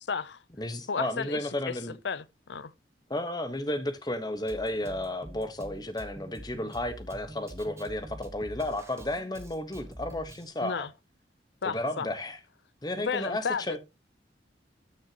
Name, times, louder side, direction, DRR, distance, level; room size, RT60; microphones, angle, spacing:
voice 1, 0.0-0.4 0.9-1.8 2.0-2.7 10.6-10.9 11.6-12.1 13.0-13.6, left 5 dB, 80° left, 0.6 m, -33 dB
voice 2, 0.6-2.0 3.1-10.9 11.6-12.4 12.8-13.8, left 1 dB, 20° left, 1.1 m, -33 dB
Drum kit, 4.5-10.5, equal, 15° right, 1.2 m, -46 dB
13.0 x 6.3 x 2.9 m
head